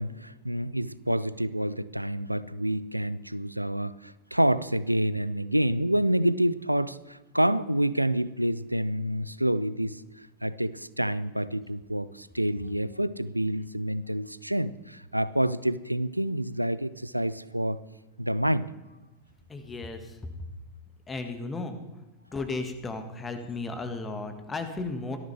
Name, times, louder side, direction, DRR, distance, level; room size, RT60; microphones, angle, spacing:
voice 1, 0.0-17.8 18.2-18.7, right 1 dB, 90° right, 17 dB, 0.4 m, -28 dB
voice 2, 19.5-20.2 21.1-21.8 22.3-25.2, left 3 dB, 15° left, 7 dB, 1.7 m, -34 dB
18.0 x 13.5 x 3.4 m, 1.1 s
figure-of-eight pair, 90°, 0 cm